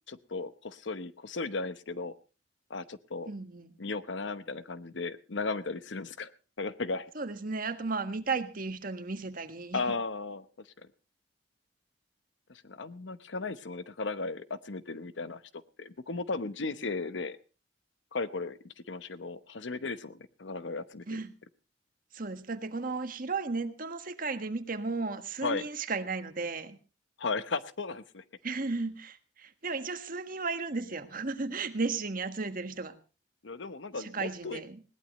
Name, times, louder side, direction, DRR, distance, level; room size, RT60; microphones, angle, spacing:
voice 1, 0.1-2.1 2.7-3.3 3.8-6.3 6.6-7.1 9.7-10.7 12.5-15.4 15.8-17.4 18.1-21.2 25.4-25.6 27.2-28.2 33.4-34.6, left 3 dB, 85° left, 14 dB, 0.9 m, -36 dB
voice 2, 3.3-3.7 7.1-9.9 21.1-21.3 22.1-26.8 28.4-33.0 34.0-34.8, right 3 dB, 50° right, 9 dB, 1.5 m, -34 dB
20.5 x 18.0 x 3.0 m, 0.34 s
head